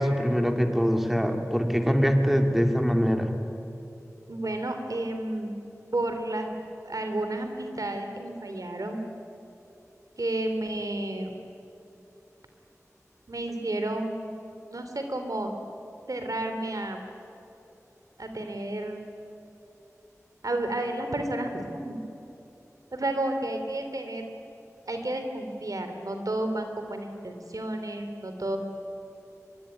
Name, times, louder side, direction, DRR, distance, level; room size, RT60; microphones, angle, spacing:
voice 1, 0.0-3.3, equal, 5° right, 4 dB, 2.7 m, -23 dB
voice 2, 4.3-5.5 5.9-6.5 6.8-9.0 10.2-11.3 13.3-14.3 14.7-15.5 16.1-17.0 18.2-19.1 20.4-21.9 22.9-24.3 24.9-28.6, right 1 dB, 80° right, 5 dB, 3.0 m, -31 dB
23.0 x 22.5 x 9.8 m, 2.9 s
wide cardioid pair, 50°, 6 cm